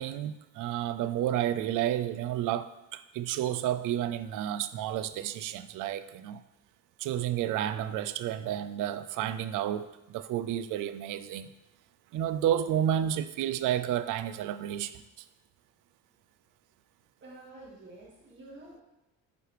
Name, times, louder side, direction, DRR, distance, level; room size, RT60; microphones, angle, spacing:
voice 1, 0.0-6.4 7.0-11.5 12.1-15.0, right 11 dB, 65° right, 13 dB, 0.4 m, -31 dB
voice 2, 17.2-18.8, right 2 dB, 35° right, -4 dB, 2.0 m, -49 dB
7.9 x 4.7 x 3.3 m, 0.95 s
cardioid pair, 155°, 34 cm